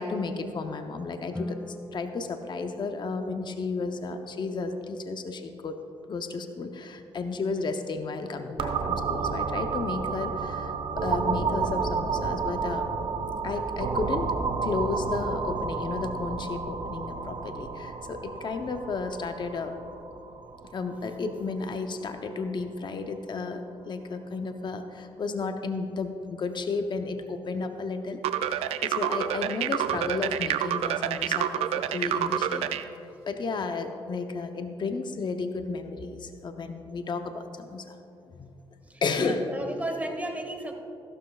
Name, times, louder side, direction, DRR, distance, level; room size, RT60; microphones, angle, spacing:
voice 1, 0.0-1.6 1.9-5.8 6.1-12.9 13.4-14.3 14.6-19.7 20.7-32.6 33.3-38.0 38.4-38.5 39.0-39.5, left 4 dB, 50° left, 6 dB, 0.8 m, -33 dB
Guitar, 1.3-3.9, left 2 dB, 10° left, 0.3 m, -42 dB
sound 1, 8.6-22.1, right 5 dB, 55° right, 1.0 m, -31 dB
sound 2, 28.2-32.8, right 10 dB, 85° right, 0.4 m, -27 dB
voice 2, 38.8-40.7, right 1 dB, 15° right, 3 dB, 1.8 m, -34 dB
15.5 x 12.5 x 2.4 m, 2.8 s
cardioid pair, 65°, 10 cm